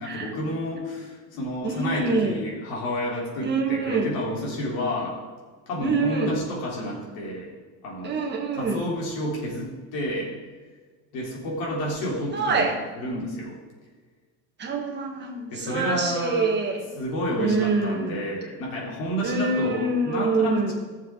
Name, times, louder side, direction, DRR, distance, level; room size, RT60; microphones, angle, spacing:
voice 1, 0.0-5.2 5.7-7.5 7.8-10.3 11.1-12.7 13.0-13.6 15.5-16.5 17.0-20.7, equal, 75° left, -3 dB, 3.6 m, -30 dB
voice 2, 1.6-2.4 3.4-4.2 5.8-6.4 8.0-8.9 12.3-12.7 14.6-16.9 17.4-18.2 19.2-20.7, right 3 dB, 30° right, 2 dB, 1.5 m, -25 dB
15.5 x 7.0 x 3.8 m, 1.4 s
cardioid pair, 170°, 34 cm